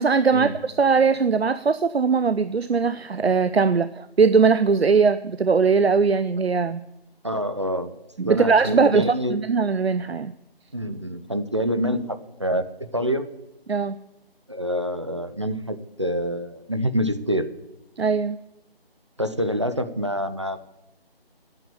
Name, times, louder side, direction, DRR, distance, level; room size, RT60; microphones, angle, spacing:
voice 1, 0.0-6.8 8.2-10.3 13.7-14.0 18.0-18.4, right 5 dB, 90° right, 13 dB, 0.7 m, -20 dB
voice 2, 7.2-7.9 8.2-9.4 10.7-13.3 14.5-17.5 19.2-20.6, equal, 30° right, 10 dB, 0.6 m, -26 dB
11.0 x 9.2 x 7.0 m, 0.88 s
figure-of-eight pair, 165°, 31 cm